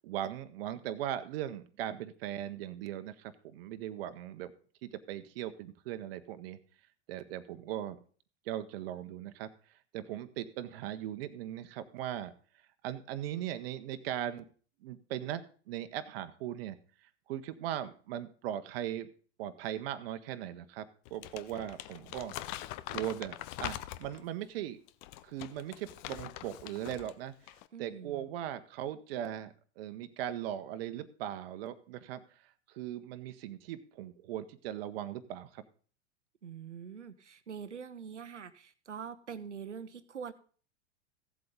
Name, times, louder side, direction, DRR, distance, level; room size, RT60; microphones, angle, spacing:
voice 1, 0.0-4.5 4.8-6.6 7.1-8.0 8.4-9.5 9.9-12.3 12.8-14.4 14.8-16.8 17.0-19.1 19.4-22.3 22.9-24.8 25.2-27.3 27.8-32.2 32.7-35.6, right 11 dB, 55° right, 10 dB, 1.1 m, -39 dB
Crumpling crinkling, 21.1-24.3 24.9-27.1 27.4-27.7, left 15 dB, 45° left, 0.7 m, -43 dB
voice 2, 27.7-28.2 36.4-40.3, right 7 dB, 85° right, 14 dB, 0.9 m, -44 dB
15.5 x 7.8 x 3.8 m, 0.42 s
figure-of-eight pair, 90°, 35 cm